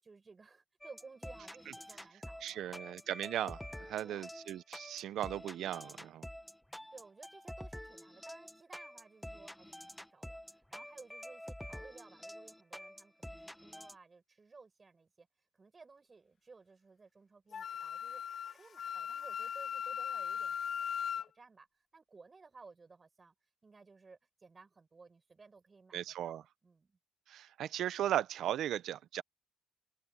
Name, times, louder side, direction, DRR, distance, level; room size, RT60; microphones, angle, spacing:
voice 1, 0.0-2.9 4.0-4.3 6.9-15.3 15.5-20.8 21.1-23.3 23.6-27.0, right 4 dB, 30° right, 7.3 m, -57 dB
sound 1, 0.8-13.9, left 1 dB, 5° left, 1.5 m, -48 dB
voice 2, 2.4-6.3 25.9-26.4 27.3-29.2, right 11 dB, 75° right, 0.8 m, -37 dB
Wind instrument woodwind instrument, 17.5-21.3, left 8 dB, 50° left, 1.8 m, -38 dB
cardioid pair, 90°, 0 cm